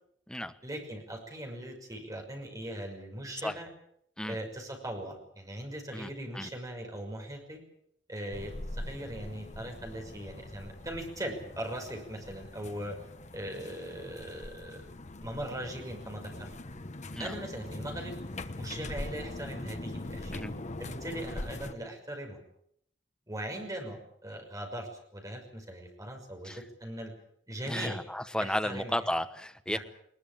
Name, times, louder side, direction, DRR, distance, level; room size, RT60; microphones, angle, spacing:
voice 1, 0.6-3.7 4.3-7.6 8.1-13.0 13.3-14.9 15.2-16.6 17.2-18.1 18.6-20.5 20.8-22.4 23.3-27.1 27.5-28.0 28.4-29.1 29.7-29.8, right 1 dB, 20° right, 3 dB, 6.0 m, -40 dB
sound 1, 8.3-21.7, left 1 dB, 40° left, 1.2 m, -42 dB
voice 2, 27.7-29.8, left 1 dB, 5° left, 9 dB, 1.2 m, -33 dB
21.0 x 20.5 x 8.8 m, 0.71 s
head